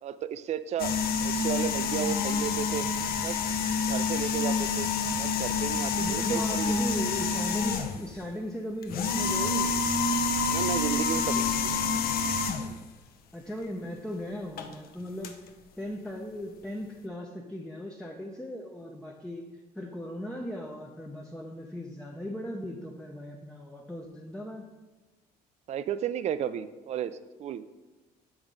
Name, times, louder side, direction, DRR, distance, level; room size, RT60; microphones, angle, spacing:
voice 1, 0.0-1.0 1.2-2.9 3.2-3.4 3.9-4.9 5.2-6.8 10.5-11.8 25.7-27.7, right 9 dB, 40° right, 14 dB, 0.4 m, -33 dB
sound 1, 0.8-8.1 8.8-12.8 14.6-14.7 15.2-15.3, left 4 dB, 65° left, 0.7 m, -28 dB
voice 2, 6.0-9.8 13.3-15.5 15.8-24.7, left 1 dB, 5° left, 1 dB, 0.6 m, -38 dB
7.2 x 3.6 x 5.1 m, 1.2 s
cardioid pair, 110°, 17 cm